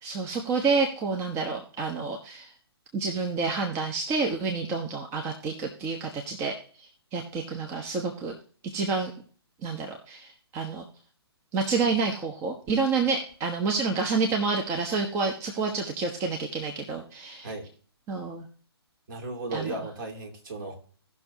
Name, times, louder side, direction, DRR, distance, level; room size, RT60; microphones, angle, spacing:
voice 1, 0.0-2.5 2.9-6.5 7.1-8.3 8.7-9.1 9.6-10.8 11.5-17.5 18.1-18.4 19.5-19.8, right 4 dB, 20° right, 2 dB, 1.0 m, -28 dB
voice 2, 19.1-20.7, right 2 dB, 50° right, 1 dB, 2.7 m, -35 dB
17.5 x 6.1 x 2.8 m, 0.43 s
figure-of-eight pair, 130°, 14 cm